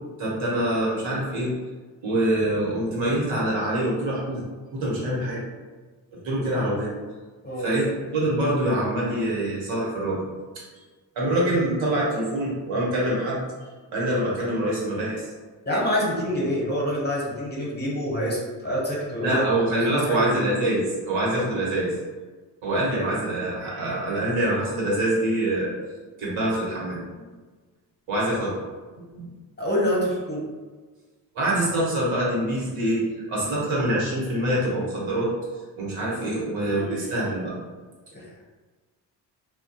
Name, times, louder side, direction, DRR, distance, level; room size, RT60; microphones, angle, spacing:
voice 1, 0.2-1.5 2.0-4.4 4.7-5.4 6.1-6.9 7.6-10.2 11.2-13.4 13.9-15.3 19.2-21.9 22.6-25.7 26.2-27.3 28.1-28.5 29.0-29.3 31.3-35.3 35.8-37.5, right 1 dB, 70° right, -5 dB, 1.1 m, -25 dB
voice 2, 15.6-19.4 19.7-20.3 29.6-30.4 36.8-37.0 38.1-38.5, equal, 20° left, -5 dB, 0.9 m, -26 dB
2.6 x 2.3 x 2.3 m, 1.4 s
hypercardioid pair, 45°, 48 cm